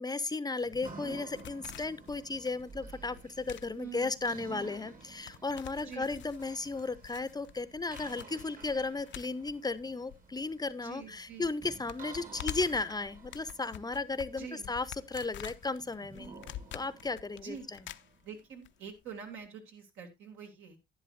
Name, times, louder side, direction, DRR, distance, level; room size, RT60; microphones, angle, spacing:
voice 1, 0.0-16.4 16.7-17.9, left 3 dB, 20° left, 0.6 m, -35 dB
sound 1, 0.6-10.7 11.0-11.1 11.4-18.7 19.0-19.1, left 11 dB, 70° left, 0.5 m, -48 dB
sound 2, 0.6-18.4, right 4 dB, 45° right, 1.5 m, -53 dB
voice 2, 3.8-4.5 5.8-6.1 10.8-11.5 14.4-14.7 17.4-17.7 18.2-20.8, right 6 dB, 85° right, 2.7 m, -46 dB
11.0 x 10.5 x 2.5 m
cardioid pair, 90°, 20 cm